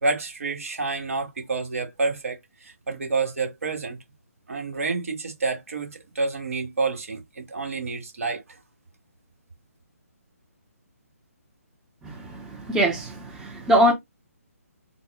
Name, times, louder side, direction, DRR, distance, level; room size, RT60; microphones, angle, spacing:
voice 1, 0.0-4.0 4.5-5.9 6.1-8.4, right 3 dB, 60° right, 1.5 m, -28 dB
voice 2, 12.0-13.9, equal, 5° right, 0.5 m, -23 dB
4.0 x 2.0 x 3.5 m
figure-of-eight pair, 140°, 8 cm